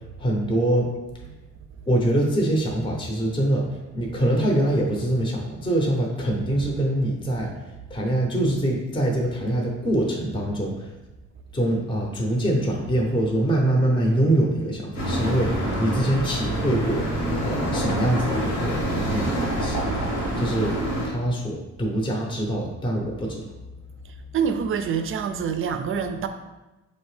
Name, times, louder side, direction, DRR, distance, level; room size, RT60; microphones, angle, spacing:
voice 1, 0.2-0.9 1.9-3.7 3.9-7.5 7.9-10.9 11.5-17.1 17.4-19.8 20.4-20.8 21.0-23.4, right 1 dB, 15° left, 0 dB, 0.7 m, -24 dB
sound 1, 14.9-21.1, right 1 dB, 85° left, 1.5 m, -26 dB
voice 2, 24.3-26.3, right 7 dB, 45° right, 8 dB, 0.4 m, -26 dB
4.2 x 2.8 x 3.2 m, 1.1 s
cardioid pair, 90°, 30 cm